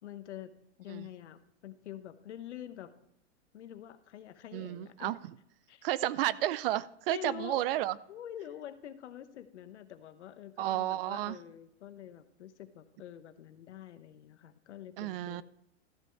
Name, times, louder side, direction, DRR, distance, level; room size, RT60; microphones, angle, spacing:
voice 1, 0.0-2.9 3.5-5.2 5.7-5.8 7.1-7.6 8.1-15.4, left 10 dB, 80° left, 11 dB, 1.1 m, -46 dB
voice 2, 4.5-5.3 5.8-8.0 10.6-11.4 15.0-15.4, right 14 dB, 55° right, 19 dB, 0.5 m, -32 dB
13.0 x 6.0 x 4.6 m, 0.77 s
hypercardioid pair, 130°, 34 cm